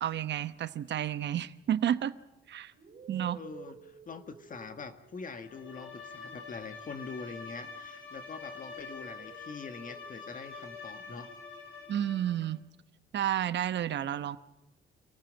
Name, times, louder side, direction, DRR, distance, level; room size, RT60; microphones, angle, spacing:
voice 1, 0.0-2.1 2.5-2.7 3.1-3.4 11.9-12.6 13.1-14.4, right 10 dB, 65° right, 13 dB, 1.0 m, -31 dB
sound 1, 2.7-8.1 8.5-12.4, right 5 dB, 40° right, 4.9 m, -55 dB
voice 2, 3.3-11.3, left 4 dB, 40° left, 8 dB, 1.7 m, -44 dB
Bowed string instrument, 5.4-12.5, left 4 dB, 80° left, 4.3 m, -46 dB
26.0 x 15.0 x 9.0 m, 0.96 s
cardioid pair, 90°, 20 cm